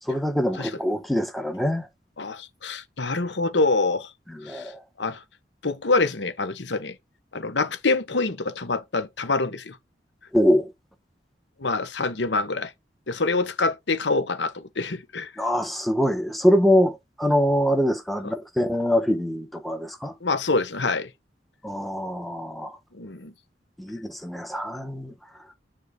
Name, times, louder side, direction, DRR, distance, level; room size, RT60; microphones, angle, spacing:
voice 1, 0.1-1.9 4.3-4.8 10.3-10.7 15.4-20.1 21.6-22.8 23.8-25.1, equal, ahead, 1.2 m, -24 dB
voice 2, 2.2-4.1 4.4-4.7 5.0-5.2 5.6-7.0 7.3-9.8 11.6-12.7 13.1-15.3 18.2-18.3 20.2-21.1 22.9-23.3, left 3 dB, 90° left, 1.1 m, -26 dB
9.5 x 3.8 x 3.8 m
head